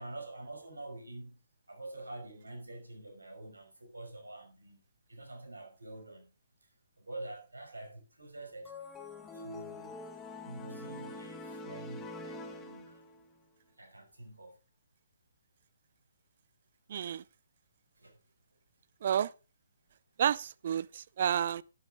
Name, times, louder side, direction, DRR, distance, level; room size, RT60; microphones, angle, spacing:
voice 1, 0.0-4.8 5.1-6.3 6.6-6.7 7.0-8.7 9.3-10.0 10.4-13.0 13.8-14.6 18.0-18.2, right 2 dB, 85° right, 5.6 m, -47 dB
sound 1, 8.6-13.3, left 2 dB, 15° left, 1.5 m, -45 dB
voice 2, 16.9-17.2 19.0-19.3 20.2-21.6, right 9 dB, 50° right, 0.5 m, -30 dB
11.5 x 11.0 x 3.7 m
figure-of-eight pair, 135°, 0 cm